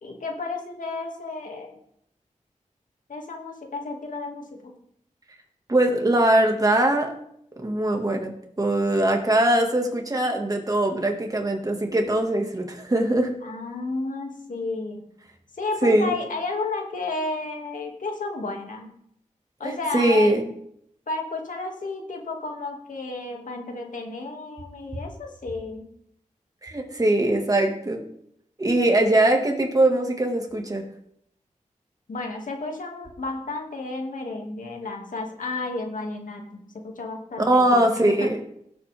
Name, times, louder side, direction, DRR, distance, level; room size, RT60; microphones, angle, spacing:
voice 1, 0.0-1.8 3.1-4.7 13.4-15.0 15.6-18.9 19.6-20.3 21.1-25.9 28.9-29.1 32.1-38.3, left 3 dB, 85° left, 1 dB, 2.5 m, -32 dB
voice 2, 5.7-7.1 7.6-8.3 8.6-13.3 15.8-16.1 19.6-20.5 26.6-28.0 28.6-30.8 37.4-38.4, right 1 dB, 25° right, 2 dB, 2.0 m, -21 dB
18.0 x 7.3 x 3.6 m, 0.71 s
wide cardioid pair, 100°, 13 cm